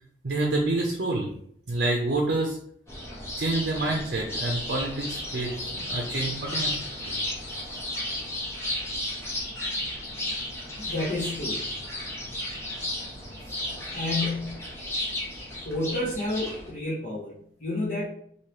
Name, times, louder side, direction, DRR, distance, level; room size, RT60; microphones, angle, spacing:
voice 1, 0.2-1.3 1.7-2.6 3.4-6.7 7.0-7.1, right 2 dB, 70° right, 0 dB, 0.5 m, -27 dB
sound 1, 2.9-16.7, left 1 dB, 15° left, 0.7 m, -33 dB
voice 2, 10.7-11.6 13.9-14.7 15.6-18.1, left 2 dB, 50° left, -7 dB, 0.8 m, -30 dB
2.9 x 2.7 x 3.2 m, 0.66 s
head